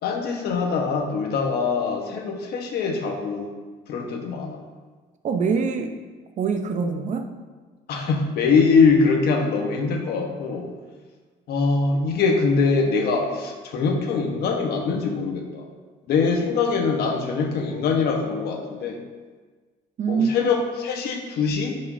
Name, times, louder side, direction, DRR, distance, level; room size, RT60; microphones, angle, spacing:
voice 1, 0.0-3.5 3.9-4.6 7.9-10.7 11.5-15.7 16.1-19.0 20.1-21.8, left 4 dB, 70° left, 3 dB, 1.2 m, -23 dB
voice 2, 5.2-6.0 6.4-7.3 20.0-20.5, right 5 dB, 45° right, 6 dB, 0.8 m, -24 dB
11.0 x 5.5 x 2.7 m, 1.4 s
cardioid pair, 110°, 17 cm